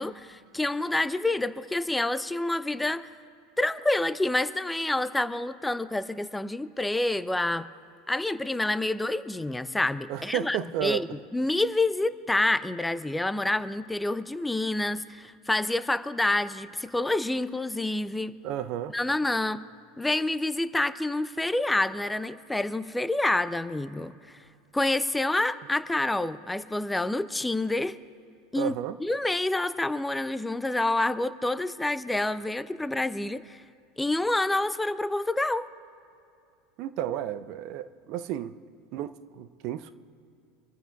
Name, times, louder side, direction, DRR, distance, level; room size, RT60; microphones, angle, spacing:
voice 1, 0.0-3.1 3.6-7.7 8.1-11.1 11.3-18.3 18.9-19.6 20.0-24.4 24.7-28.0 28.5-28.7 29.0-33.6 34.0-35.7, left 2 dB, 10° left, 14 dB, 0.5 m, -28 dB
voice 2, 10.1-11.1 18.4-18.9 28.6-29.0 36.8-38.6 38.9-39.9, right 11 dB, 50° right, 12 dB, 0.6 m, -32 dB
25.5 x 14.0 x 2.3 m, 2.6 s
figure-of-eight pair, 75°, 0 cm